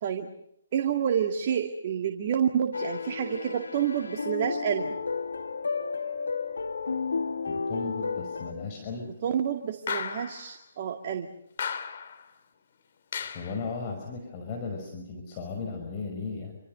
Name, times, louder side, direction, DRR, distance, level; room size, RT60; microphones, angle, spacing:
voice 1, 0.7-4.9 9.2-11.3, right 8 dB, 40° right, 4 dB, 2.2 m, -28 dB
sound 1, 2.7-8.5, left 5 dB, 75° left, 2.7 m, -32 dB
voice 2, 7.5-9.1 13.3-16.6, left 4 dB, 30° left, 2 dB, 5.6 m, -36 dB
sound 2, 9.9-10.5 11.6-12.2 13.1-13.6, left 7 dB, 50° left, 3.1 m, -34 dB
28.0 x 26.5 x 6.7 m, 0.77 s
figure-of-eight pair, 140°, 0 cm